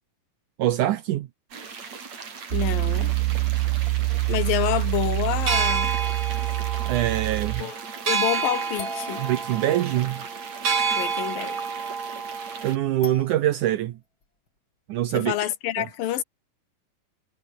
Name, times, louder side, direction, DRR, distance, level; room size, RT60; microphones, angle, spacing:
voice 1, 0.6-1.3 6.9-7.6 9.2-10.2 12.6-14.0 14.9-15.5 15.8-15.9, right 13 dB, 70° right, 2.3 m, -24 dB
sound 1, 1.5-12.8, right 5 dB, 50° right, 4.9 m, -30 dB
voice 2, 2.5-3.1 4.3-5.9 7.6-7.8 8.1-9.2 10.9-11.6 15.1-16.2, left 13 dB, 85° left, 3.1 m, -28 dB
Piano, 2.5-7.6, right 19 dB, 90° right, 2.3 m, -25 dB
sound 2, 8.8-10.2 13.0-13.6 14.2-14.3, left 3 dB, 35° left, 5.5 m, -41 dB
omnidirectional pair, 4.0 m